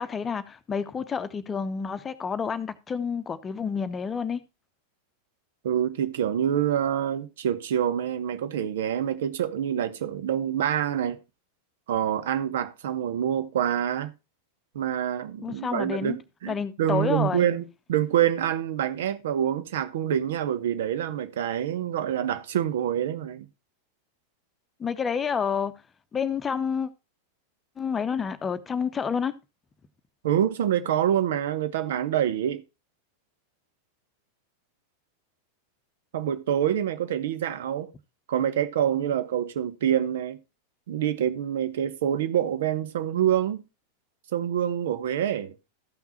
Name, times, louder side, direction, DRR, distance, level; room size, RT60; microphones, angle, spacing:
voice 1, 0.0-4.4 15.4-16.2 16.5-17.4 24.8-25.7 26.1-26.9 27.8-29.3, left 6 dB, 20° left, 0.9 m, -29 dB
voice 2, 5.6-11.2 11.9-14.1 14.7-23.5 30.2-32.6 36.1-37.9 38.3-40.4 40.9-43.6 44.3-45.5, right 10 dB, 60° right, 1.1 m, -26 dB
14.0 x 5.9 x 4.2 m
figure-of-eight pair, 90°, 0 cm